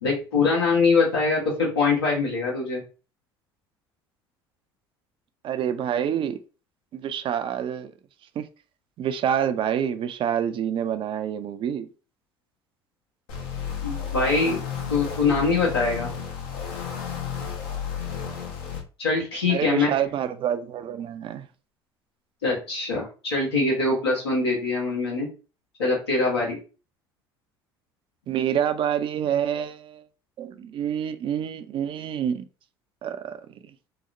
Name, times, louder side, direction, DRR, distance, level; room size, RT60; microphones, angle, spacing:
voice 1, 0.0-2.8 13.8-14.6 14.9-16.1 19.0-19.9 22.4-25.3 25.8-26.6, left 3 dB, 90° left, 1.1 m, -23 dB
voice 2, 5.4-6.4 6.9-7.9 8.4-8.5 9.0-11.9 19.5-21.5 28.3-30.0 30.4-32.5 33.0-33.4, right 9 dB, 40° right, 0.3 m, -27 dB
sound 1, 13.3-18.8, left 7 dB, 70° left, 0.7 m, -32 dB
2.9 x 2.0 x 2.4 m
hypercardioid pair, 65°, 13 cm